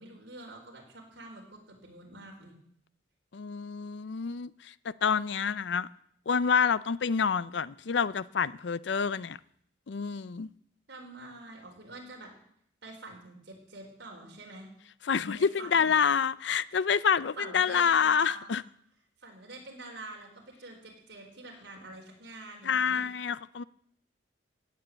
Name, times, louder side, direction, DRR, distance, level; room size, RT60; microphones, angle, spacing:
voice 1, 0.0-2.5 10.9-12.3 12.8-14.7 15.3-15.9 17.4-18.5 19.2-23.0, right 2 dB, 65° right, 4.5 m, -46 dB
voice 2, 3.3-5.9 6.3-9.4 9.9-10.5 15.1-18.6 22.6-23.6, left 6 dB, 70° left, 0.5 m, -27 dB
16.0 x 9.2 x 7.8 m
head